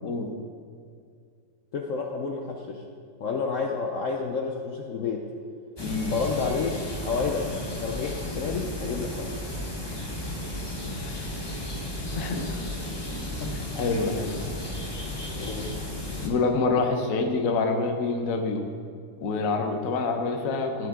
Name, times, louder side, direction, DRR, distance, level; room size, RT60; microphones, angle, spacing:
voice 1, 0.0-0.3 5.8-6.1 10.8-11.6 12.1-12.8 13.4-14.4 16.2-18.6 19.2-20.9, left 3 dB, 55° left, 4 dB, 1.1 m, -27 dB
voice 2, 1.7-2.8 3.2-5.2 6.1-6.8 7.0-7.5 7.8-9.3 13.4-13.5 15.4-15.7 19.6-19.8, left 5 dB, 75° left, 2 dB, 0.7 m, -30 dB
sound 1, 5.8-16.3, left 1 dB, 20° left, 0.7 m, -34 dB
15.5 x 5.8 x 3.7 m, 2.2 s
omnidirectional pair, 2.2 m